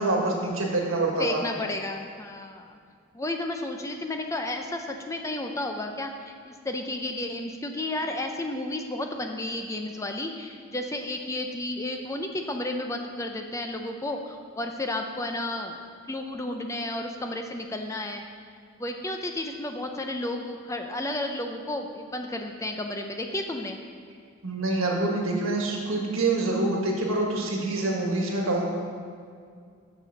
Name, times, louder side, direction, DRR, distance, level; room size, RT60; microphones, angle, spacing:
voice 1, 0.0-1.4 24.4-28.7, right 2 dB, 80° right, -1 dB, 1.6 m, -26 dB
voice 2, 1.2-2.8 3.1-15.8 16.1-18.2 18.8-23.8, left 1 dB, 15° left, 4 dB, 0.4 m, -32 dB
6.7 x 6.7 x 6.4 m, 2.2 s
head